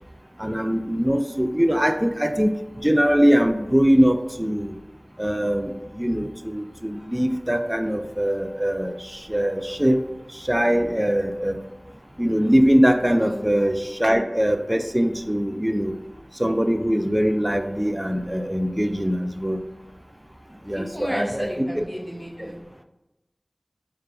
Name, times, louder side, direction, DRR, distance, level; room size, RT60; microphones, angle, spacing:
voice 1, 0.4-2.6 2.8-4.8 5.2-5.7 6.0-8.9 9.3-10.0 10.5-11.6 12.2-16.0 16.4-19.6 20.7-21.5 21.8-21.9, equal, 15° right, 7 dB, 0.3 m, -22 dB
voice 2, 20.6-22.6, equal, 5° left, -4 dB, 1.3 m, -33 dB
3.3 x 2.5 x 4.5 m, 0.99 s
wide cardioid pair, 40°, 0 cm